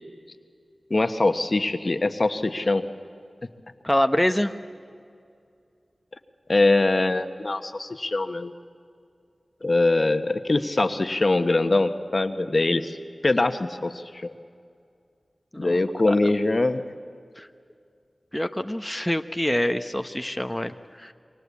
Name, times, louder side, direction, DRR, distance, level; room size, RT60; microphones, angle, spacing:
voice 1, 0.9-2.8 6.5-8.5 9.6-13.0 13.2-14.3 15.6-16.8, left 2 dB, 55° left, 9 dB, 1.3 m, -23 dB
voice 2, 3.8-4.5 15.5-16.3 17.4-17.5 18.3-21.1, left 1 dB, 10° left, 8 dB, 1.1 m, -26 dB
27.0 x 24.0 x 8.5 m, 2.3 s
cardioid pair, 40°, 0 cm